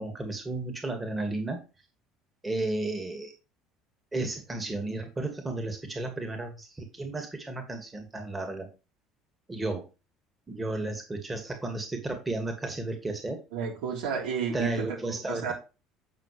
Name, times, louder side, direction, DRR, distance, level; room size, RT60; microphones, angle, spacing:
voice 1, 0.0-1.6 2.4-3.3 4.1-8.7 9.5-9.8 10.5-13.4 14.5-15.5, right 2 dB, 20° right, 4 dB, 2.3 m, -33 dB
voice 2, 13.5-15.5, right 6 dB, 70° right, -1 dB, 3.9 m, -32 dB
9.0 x 6.5 x 3.3 m, 0.30 s
hypercardioid pair, 65°, 0 cm